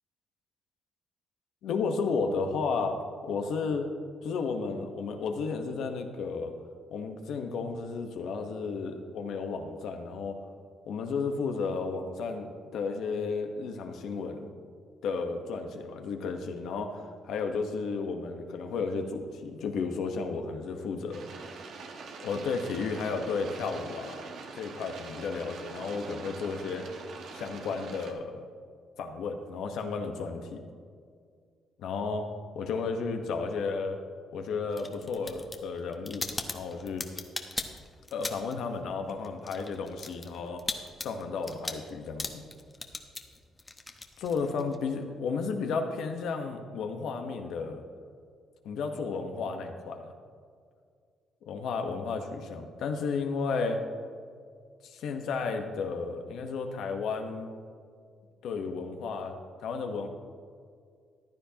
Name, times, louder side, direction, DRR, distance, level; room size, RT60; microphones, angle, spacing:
voice 1, 1.6-3.0 3.2-3.9 4.2-6.5 6.9-10.4 10.9-12.5 12.7-14.5 15.0-21.2 22.2-26.8 27.3-28.4 29.0-30.6 31.8-32.3 32.5-34.0 34.3-36.3 36.5-37.0 38.1-40.6 41.0-42.4 44.2-47.8 48.6-50.1 51.5-53.8 54.8-57.5 58.4-60.1, left 4 dB, 80° left, 5 dB, 1.1 m, -33 dB
sound 1, 21.1-28.1, right 4 dB, 75° right, 1.2 m, -44 dB
sound 2, 34.7-38.6 38.9-44.8, left 2 dB, 20° left, 1.0 m, -38 dB
14.5 x 10.5 x 2.9 m, 2.2 s
cardioid pair, 90°, 0 cm